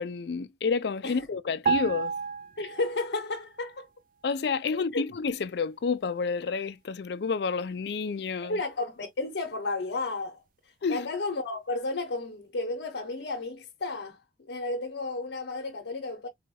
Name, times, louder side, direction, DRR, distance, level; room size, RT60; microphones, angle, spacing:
voice 1, 0.0-2.1 4.2-8.6 10.8-11.1, left 5 dB, 65° left, 0.4 m, -29 dB
sound 1, 1.7-3.3 3.6-3.8, right 6 dB, 45° right, 0.3 m, -30 dB
voice 2, 2.6-3.9 4.7-5.0 8.4-10.4 10.9-16.3, left 3 dB, 80° left, 0.8 m, -33 dB
4.1 x 2.3 x 2.7 m
head